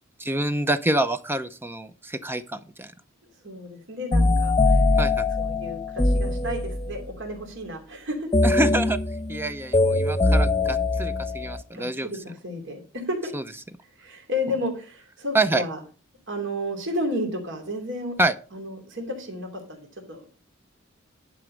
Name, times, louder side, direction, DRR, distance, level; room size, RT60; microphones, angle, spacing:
voice 1, 0.2-2.9 5.0-5.3 8.4-9.0 9.3-12.1 13.3-13.4 15.3-15.6 18.2-18.3, right 2 dB, 10° right, 11 dB, 0.5 m, -26 dB
voice 2, 3.4-4.9 5.4-8.3 11.7-13.3 14.0-15.8 16.3-18.1 18.5-20.3, left 1 dB, 65° right, 2 dB, 2.7 m, -32 dB
sound 1, 4.1-7.1 8.3-11.6, left 2 dB, 20° left, 0.9 m, -22 dB
11.0 x 5.0 x 6.3 m, 0.37 s
head